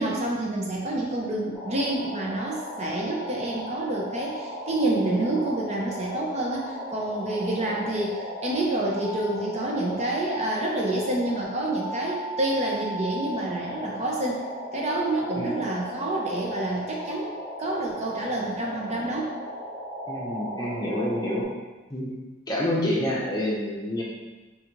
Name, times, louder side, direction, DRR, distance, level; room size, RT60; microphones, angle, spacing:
voice 1, 0.0-14.4 14.7-17.3 17.6-19.4, right 1 dB, 35° right, -2 dB, 0.6 m, -28 dB
sound 1, 1.5-21.4, equal, ahead, 1.4 m, -36 dB
voice 2, 20.1-21.4 21.9-22.2 22.5-24.0, left 1 dB, 20° left, -4 dB, 0.8 m, -28 dB
3.8 x 3.7 x 3.0 m, 1.2 s
head